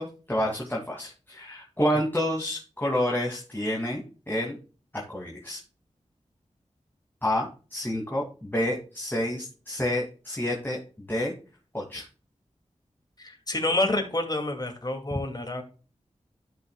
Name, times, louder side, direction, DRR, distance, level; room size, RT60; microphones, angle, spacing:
voice 1, 0.0-4.6 4.9-5.6 7.2-10.8 11.1-11.3 11.7-12.0, left 1 dB, 15° left, -2 dB, 2.3 m, -29 dB
voice 2, 13.2-15.6, left 2 dB, 30° left, 5 dB, 2.2 m, -28 dB
12.0 x 6.1 x 2.2 m, 0.36 s
cardioid pair, 50°, 13 cm